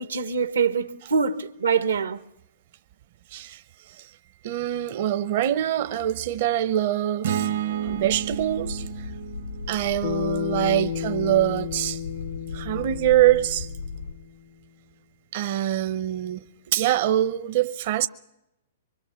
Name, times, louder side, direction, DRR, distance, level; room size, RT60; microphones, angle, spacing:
voice 1, 0.0-2.2, right 6 dB, 85° right, 1.3 m, -24 dB
voice 2, 3.3-4.2 4.4-9.1 9.7-12.0 12.5-13.7 15.3-18.1, right 12 dB, 55° right, 0.8 m, -24 dB
sound 1, 7.2-11.5, right 10 dB, 70° right, 1.1 m, -32 dB
sound 2, 7.8-14.1, left 5 dB, 85° left, 3.3 m, -37 dB
Bass guitar, 10.0-14.5, left 9 dB, 70° left, 0.8 m, -33 dB
24.0 x 24.0 x 7.1 m
hypercardioid pair, 125°, 0 cm